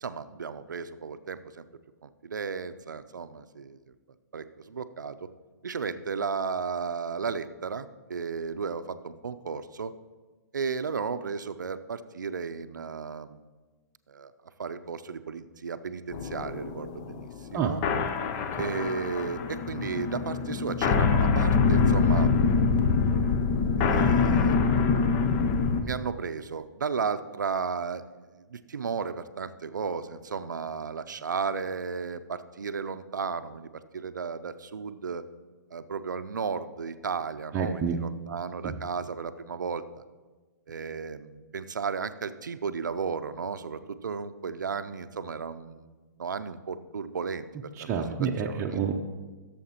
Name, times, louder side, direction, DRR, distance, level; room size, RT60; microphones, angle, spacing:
voice 1, 0.0-1.6 2.0-3.8 4.3-5.3 5.6-9.9 10.5-13.5 14.1-14.3 14.6-17.8 18.6-22.3 23.8-24.7 25.8-28.0 28.3-35.2 35.7-39.8 40.7-47.5 47.8-47.9 48.2-48.8, right 5 dB, 85° right, 12 dB, 0.5 m, -34 dB
sound 1, 16.1-25.8, left 5 dB, 35° left, 0.7 m, -24 dB
voice 2, 37.5-37.9 38.6-38.7 47.9-48.9, right 7 dB, 25° right, 0 dB, 0.7 m, -28 dB
15.5 x 7.1 x 2.9 m, 1.3 s
hypercardioid pair, 125°, 10 cm